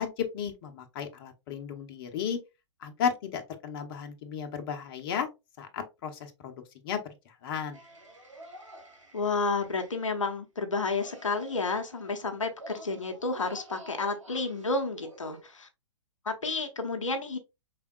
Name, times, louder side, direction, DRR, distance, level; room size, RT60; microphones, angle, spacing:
voice 1, 0.0-2.4 2.8-5.3 5.6-6.6 6.8-7.0 7.4-7.8, left 7 dB, 45° left, 0.9 m, -34 dB
sound 1, 7.7-10.2 11.0-15.4, right 1 dB, 85° right, 1.3 m, -50 dB
voice 2, 9.1-15.7 16.2-17.4, left 3 dB, 85° left, 0.8 m, -31 dB
4.9 x 3.5 x 2.3 m
figure-of-eight pair, 115°, 16 cm